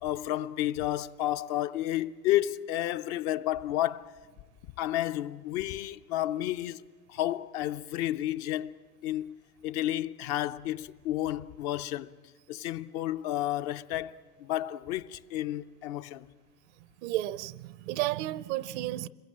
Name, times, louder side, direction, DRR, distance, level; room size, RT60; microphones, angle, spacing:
voice 1, 0.0-4.1 4.8-6.8 7.1-8.8 9.0-9.3 9.6-12.1 12.5-16.3, left 13 dB, 40° left, 0.6 m, -31 dB
voice 2, 17.0-19.1, right 16 dB, 50° right, 0.7 m, -32 dB
27.0 x 22.0 x 7.4 m
hypercardioid pair, 100°, 45 cm